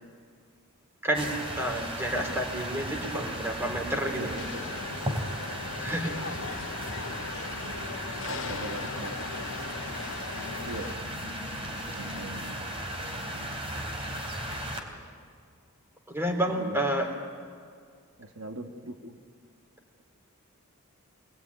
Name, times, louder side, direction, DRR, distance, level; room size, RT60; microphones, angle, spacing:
voice 1, 1.0-4.4 5.8-6.2 16.1-17.1, right 1 dB, 10° right, 3 dB, 3.4 m, -30 dB
sound 1, 1.1-14.8, equal, 25° right, 3.2 m, -36 dB
voice 2, 3.0-3.3 4.0-4.9 7.6-8.0 8.3-9.4 10.7-11.0 11.9-12.5 13.1-13.6 16.5-16.8 18.2-19.2, right 2 dB, 75° right, 4 dB, 1.6 m, -41 dB
Museum Crowd, 4.3-11.0, left 5 dB, 65° left, 0.8 m, -39 dB
25.0 x 19.5 x 9.6 m, 2.1 s
head